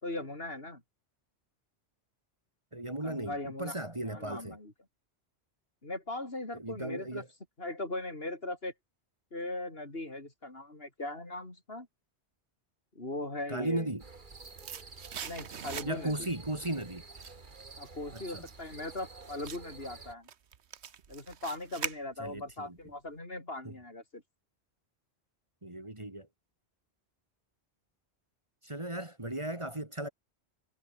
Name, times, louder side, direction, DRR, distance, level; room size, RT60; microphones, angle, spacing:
voice 1, 0.0-0.8 3.0-3.7 4.1-4.7 5.8-7.2 7.6-8.7 9.3-11.9 12.9-13.9 15.2-16.3 17.8-20.3 21.1-24.2, left 2 dB, 60° left, 4.8 m, -39 dB
voice 2, 2.7-4.6 6.5-7.3 13.5-14.0 15.8-17.0 18.1-18.5 22.2-22.8 23.6-23.7 25.6-26.3 28.6-30.1, right 1 dB, 25° right, 2.3 m, -36 dB
sound 1, 13.9-16.3 16.6-22.5 22.8-22.9, right 8 dB, 75° right, 1.3 m, -43 dB
sound 2, 14.0-20.1, right 3 dB, 45° right, 2.0 m, -50 dB
omnidirectional pair, 1.1 m